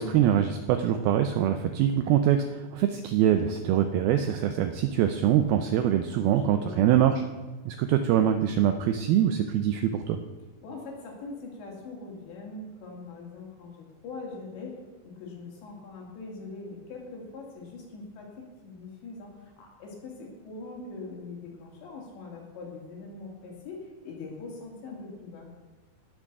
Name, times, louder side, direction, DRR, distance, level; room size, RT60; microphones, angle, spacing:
voice 1, 0.0-7.2 7.7-10.2, right 10 dB, 85° right, 8 dB, 2.1 m, -24 dB
voice 2, 6.2-7.0 10.6-25.5, left 3 dB, 75° left, -1 dB, 4.7 m, -42 dB
18.0 x 6.1 x 6.7 m, 1.3 s
omnidirectional pair, 5.1 m